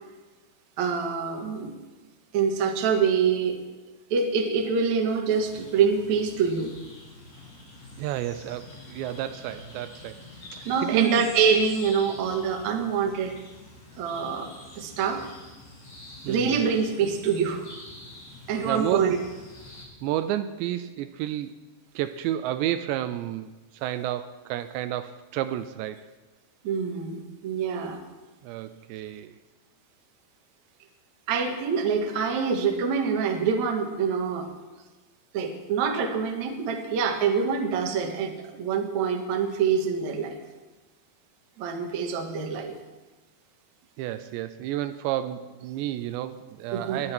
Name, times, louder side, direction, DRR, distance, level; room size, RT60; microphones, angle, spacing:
voice 1, 0.8-1.7 2.3-3.6 4.1-6.7 10.7-13.4 14.0-15.3 16.3-17.7 18.5-19.2 26.6-28.0 31.3-34.5 35.3-40.3 41.6-42.7 46.7-47.0, right 6 dB, 60° right, 3 dB, 2.1 m, -25 dB
sound 1, 5.3-19.9, left 2 dB, 50° left, 7.8 m, -46 dB
voice 2, 8.0-10.2 10.5-11.3 16.2-16.6 18.6-19.2 20.0-21.6 22.0-26.0 28.4-29.4 44.0-47.1, right 13 dB, 85° right, 11 dB, 2.8 m, -30 dB
20.5 x 12.0 x 4.4 m, 1.2 s
omnidirectional pair, 5.1 m